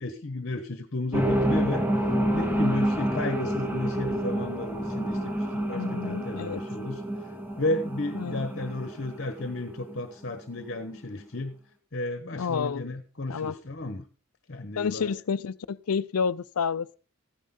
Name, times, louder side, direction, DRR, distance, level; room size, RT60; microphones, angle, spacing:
voice 1, 0.0-1.9 2.3-7.0 7.6-11.6 11.9-14.0 14.5-15.1, left 2 dB, 50° left, 1.2 m, -33 dB
sound 1, 1.1-10.0 10.3-10.4, right 1 dB, 10° right, 1.3 m, -29 dB
voice 2, 5.7-6.6 8.1-8.4 12.3-12.9 13.3-13.6 14.8-17.0, left 6 dB, 90° left, 0.5 m, -30 dB
14.5 x 10.0 x 3.8 m
head